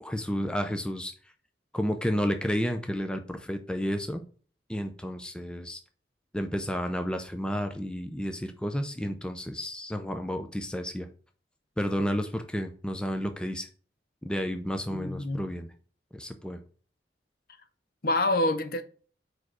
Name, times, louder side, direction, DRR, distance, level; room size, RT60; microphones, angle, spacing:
voice 1, 0.0-1.1 1.7-4.2 4.7-5.8 6.3-11.1 11.8-13.7 14.2-15.7 16.1-16.6, equal, 5° left, 0.5 m, -31 dB
voice 2, 14.9-15.5 18.0-18.8, left 2 dB, 55° left, 0.8 m, -27 dB
4.8 x 4.7 x 6.1 m
head